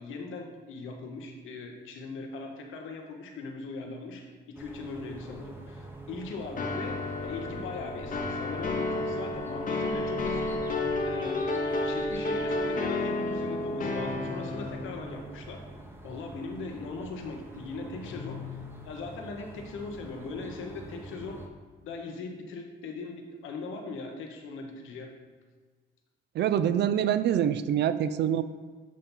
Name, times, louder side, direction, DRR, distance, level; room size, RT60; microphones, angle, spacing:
voice 1, 0.0-10.6 11.0-11.5 11.8-15.6 16.0-21.4 21.8-25.1, left 3 dB, 80° left, 2 dB, 1.0 m, -40 dB
sound 1, 4.5-21.5, right 2 dB, 10° right, 0.8 m, -45 dB
sound 2, 6.6-14.8, left 2 dB, 45° left, 0.8 m, -31 dB
Guitar, 18.0-19.3, left 10 dB, 65° left, 0.5 m, -43 dB
voice 2, 26.3-28.4, right 10 dB, 60° right, 12 dB, 0.4 m, -25 dB
7.4 x 2.8 x 5.4 m, 1.4 s
cardioid pair, 90°, 20 cm